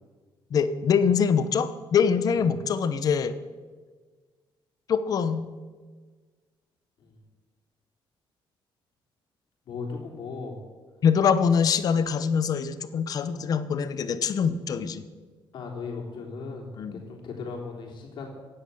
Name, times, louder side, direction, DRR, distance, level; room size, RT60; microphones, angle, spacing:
voice 1, 0.5-3.4 4.9-5.5 11.0-15.0 16.8-17.0, left 6 dB, 45° left, 13 dB, 0.9 m, -24 dB
voice 2, 9.7-10.6 15.5-18.3, left 4 dB, 60° left, 0 dB, 3.5 m, -37 dB
16.0 x 10.0 x 7.1 m, 1.4 s
cardioid pair, 180°, 9 cm